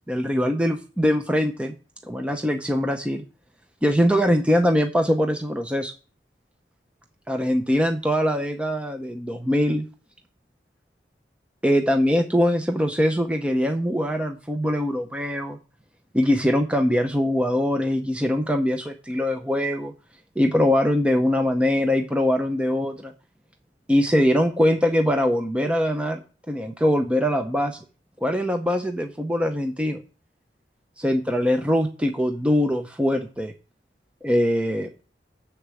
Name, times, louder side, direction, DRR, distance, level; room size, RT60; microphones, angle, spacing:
voice 1, 0.1-1.7 2.0-3.2 3.8-5.9 7.3-9.9 11.6-15.6 16.1-19.9 20.4-23.1 23.9-26.2 26.5-27.8 28.2-30.0 31.0-33.5 34.2-34.9, equal, 5° right, 5 dB, 0.6 m, -22 dB
7.1 x 6.7 x 7.7 m, 0.36 s
head